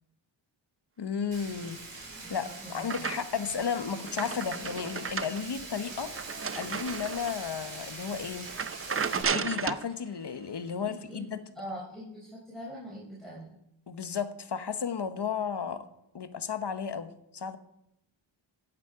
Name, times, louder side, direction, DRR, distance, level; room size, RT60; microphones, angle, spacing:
voice 1, 1.0-1.8 2.3-6.1 6.5-8.5 9.2-11.4 13.9-15.8 16.1-17.6, left 6 dB, 55° left, 10 dB, 1.1 m, -33 dB
Frying (food), 1.3-9.2, right 3 dB, 60° right, 4.4 m, -43 dB
sound 1, 2.0-3.5 3.9-7.5 8.0-8.1 8.5-9.9, right 6 dB, 30° right, 0.5 m, -34 dB
voice 2, 2.6-3.1 10.8-13.5, equal, ahead, -6 dB, 4.2 m, -43 dB
16.5 x 7.4 x 4.9 m, 0.79 s
wide cardioid pair, 70°, 48 cm